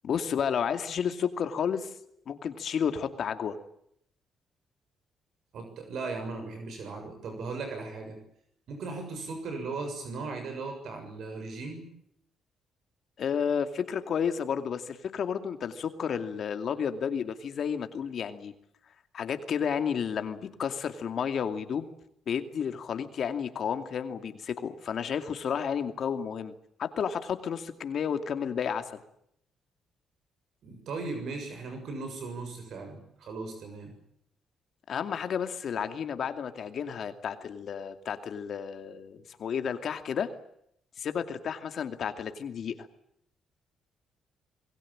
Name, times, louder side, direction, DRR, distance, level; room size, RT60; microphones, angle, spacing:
voice 1, 0.0-1.9 2.3-3.6 13.2-18.5 19.1-21.9 22.3-26.5 26.8-29.0 34.9-40.3 41.0-42.9, left 7 dB, 60° left, 8 dB, 2.4 m, -31 dB
voice 2, 5.5-8.2 8.7-11.9 30.6-33.9, right 3 dB, 65° right, 5 dB, 6.9 m, -37 dB
27.0 x 21.0 x 8.8 m, 0.73 s
cardioid pair, 90°, 0 cm